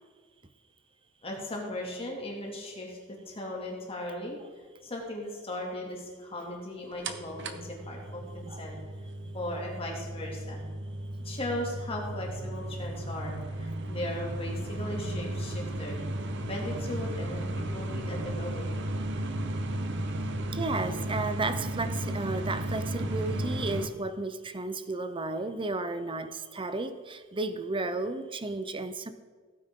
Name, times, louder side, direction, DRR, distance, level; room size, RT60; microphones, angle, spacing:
voice 1, 1.2-8.8 9.3-10.6 11.2-16.0 16.5-18.7, left 1 dB, 30° left, -2 dB, 2.6 m, -37 dB
sound 1, 7.0-23.9, right 1 dB, 60° right, 0.9 m, -34 dB
voice 2, 20.5-29.1, right 2 dB, 25° right, 11 dB, 0.7 m, -33 dB
16.0 x 9.4 x 3.8 m, 1.5 s
head